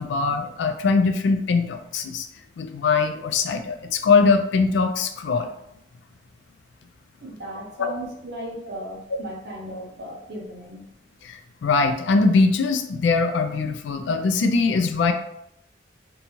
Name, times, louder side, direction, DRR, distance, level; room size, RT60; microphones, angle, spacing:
voice 1, 0.0-2.3 2.6-5.5 7.8-7.9 11.2-15.1, left 4 dB, 80° left, 7 dB, 0.3 m, -21 dB
voice 2, 7.2-10.8, right 1 dB, 65° right, -2 dB, 0.7 m, -36 dB
2.6 x 2.3 x 2.9 m, 0.77 s
head